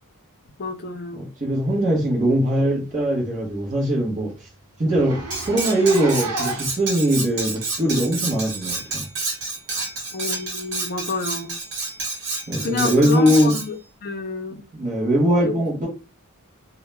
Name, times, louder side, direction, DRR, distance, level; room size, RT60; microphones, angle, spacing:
voice 1, 0.6-1.2 10.1-11.5 12.6-13.8 14.0-14.6 15.4-15.6, left 3 dB, 45° left, 0.5 m, -29 dB
voice 2, 1.1-4.5 4.8-5.2 5.5-9.0 12.5-13.5 14.7-15.9, equal, 35° right, 0.7 m, -21 dB
Zipper (clothing), 2.2-2.4 2.8-2.9 3.2-3.3 3.7-3.8 4.0-4.2 4.8-6.8 7.6-7.7 8.7-8.8, right 3 dB, 75° right, 0.8 m, -32 dB
Cutlery silverware, 5.3-13.7, right 3 dB, 55° right, 1.0 m, -29 dB
2.2 x 2.0 x 3.0 m
head